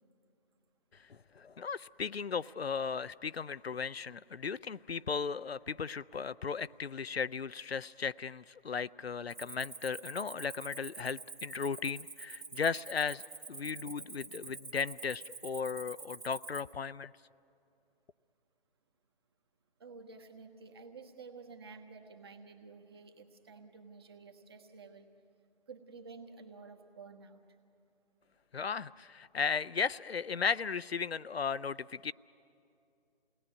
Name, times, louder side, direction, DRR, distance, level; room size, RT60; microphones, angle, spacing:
voice 1, 1.1-13.2 13.5-17.1 28.5-32.1, left 5 dB, 80° left, 16 dB, 0.6 m, -36 dB
Cricket, 9.3-16.7, right 4 dB, 65° right, 2.2 m, -47 dB
voice 2, 19.8-25.1 25.7-27.4, right 4 dB, 25° right, 5 dB, 1.4 m, -51 dB
29.0 x 19.5 x 9.6 m, 2.6 s
figure-of-eight pair, 155°, 31 cm